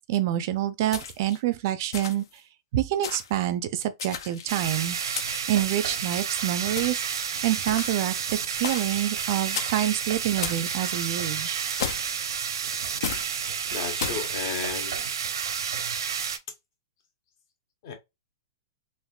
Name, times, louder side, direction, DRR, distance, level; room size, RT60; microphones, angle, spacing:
voice 1, 0.1-2.2 2.7-5.0 5.5-7.0 7.4-11.6, right 13 dB, 45° right, 0.4 m, -27 dB
sound 1, 0.9-1.4 1.9-2.4 3.0-3.4 4.0-4.6 5.1-5.6 6.8-7.1 7.7-8.1 8.6-9.0 9.5-9.9 10.4-10.7 11.8-12.2 13.0-13.3 14.0-14.3, left 7 dB, 70° left, 0.5 m, -34 dB
sound 2, 4.5-16.4, right 7 dB, 90° right, 0.6 m, -30 dB
voice 2, 13.7-14.9 17.8-17.9, left 7 dB, 45° left, 1.1 m, -33 dB
3.6 x 2.5 x 2.4 m
hypercardioid pair, 160°, 2 cm